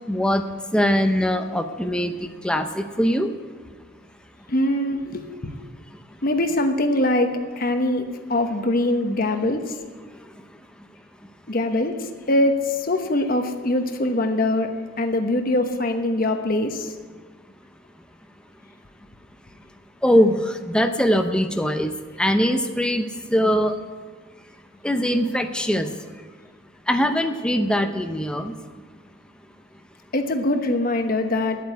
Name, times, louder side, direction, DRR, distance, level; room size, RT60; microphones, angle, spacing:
voice 1, 0.1-0.4 0.7-3.3 20.0-21.9 22.2-23.7 24.8-25.9 26.9-28.5, equal, 5° left, 6 dB, 0.6 m, -21 dB
voice 2, 4.5-5.5 6.2-9.7 11.5-14.7 15.0-16.9 30.1-31.6, left 1 dB, 45° left, 6 dB, 1.1 m, -23 dB
10.5 x 8.4 x 9.3 m, 1.5 s
head